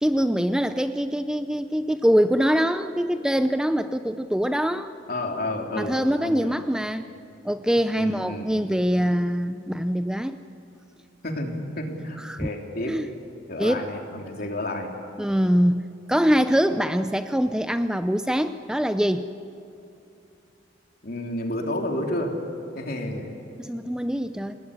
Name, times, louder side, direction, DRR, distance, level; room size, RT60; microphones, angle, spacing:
voice 1, 0.0-4.9 5.8-7.1 7.4-10.4 12.2-12.5 12.9-13.1 13.6-13.8 15.2-15.8 16.1-19.3 23.6-24.5, equal, 5° right, 9 dB, 0.5 m, -23 dB
voice 2, 5.1-6.6 8.0-8.5 11.2-13.0 13.5-14.9 21.0-22.3 22.8-23.4, left 1 dB, 55° left, 2 dB, 3.5 m, -30 dB
28.5 x 19.0 x 9.8 m, 2.7 s
head